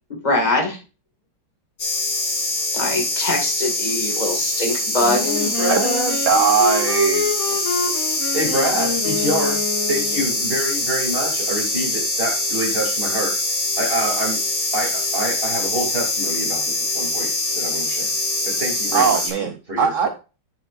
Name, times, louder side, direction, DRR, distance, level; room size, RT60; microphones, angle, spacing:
voice 1, 0.1-0.8 2.7-5.3, left 2 dB, 20° left, 1 dB, 2.0 m, -22 dB
sound 1, 1.8-19.3, left 2 dB, 80° left, 3.7 m, -24 dB
voice 2, 5.0-6.2 8.3-13.4 13.8-14.4 14.7-18.1 18.4-20.1, right 1 dB, 30° right, 0 dB, 2.9 m, -26 dB
Wind instrument woodwind instrument, 5.2-10.4, left 5 dB, 45° left, 2.3 m, -27 dB
voice 3, 6.3-7.6 18.9-20.1, right 6 dB, 85° right, 9 dB, 0.6 m, -20 dB
9.0 x 7.7 x 2.5 m, 0.32 s
omnidirectional pair, 2.0 m